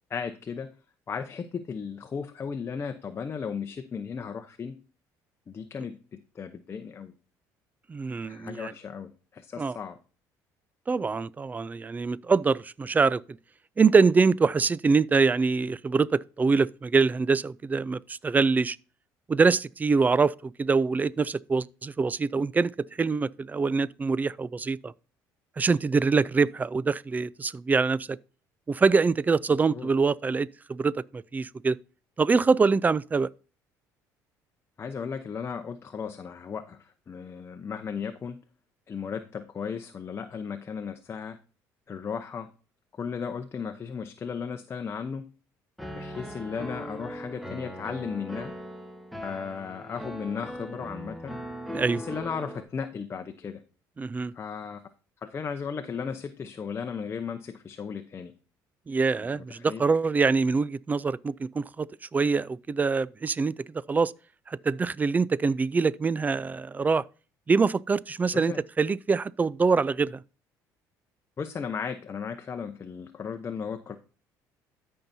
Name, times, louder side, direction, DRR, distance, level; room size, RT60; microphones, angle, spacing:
voice 1, 0.1-0.7 1.1-4.8 5.5-7.1 8.2-10.0 29.5-29.9 34.8-38.4 38.9-41.4 41.9-42.5 43.0-45.3 45.9-48.5 49.2-51.4 51.9-53.6 54.3-54.8 55.2-58.3 59.2-59.8 68.3-68.6 71.4-74.0, left 6 dB, 35° left, 0.8 m, -35 dB
voice 2, 7.9-8.7 9.6-9.8 10.9-13.2 13.8-18.8 19.3-24.9 25.6-28.2 28.7-31.8 32.2-33.3 51.7-52.0 54.0-54.3 58.9-63.5 63.9-64.1 64.5-67.0 67.5-70.2, right 4 dB, 20° right, 0.4 m, -24 dB
Piano, 45.8-52.6, equal, ahead, 1.2 m, -39 dB
13.5 x 5.6 x 2.7 m
supercardioid pair, 95°, 8 cm